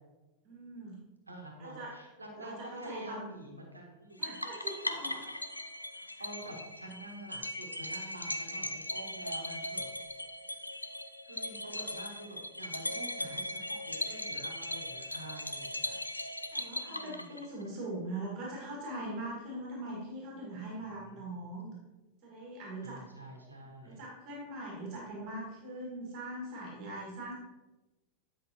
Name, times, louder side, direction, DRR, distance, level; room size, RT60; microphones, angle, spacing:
voice 1, 0.4-1.0 1.6-1.9 2.4-3.3 4.2-5.2 6.2-6.3 16.5-21.8 22.2-23.0 23.8-27.3, right 1 dB, 40° right, -3 dB, 2.0 m, -41 dB
voice 2, 1.3-4.2 5.9-9.9 11.3-15.9 16.8-17.3 21.1-21.4 22.8-24.0, right 1 dB, 80° right, 1 dB, 1.3 m, -48 dB
sound 1, 4.2-17.7, left 1 dB, 85° left, 0.5 m, -39 dB
9.7 x 5.4 x 3.0 m, 1.1 s
figure-of-eight pair, 90°, 0 cm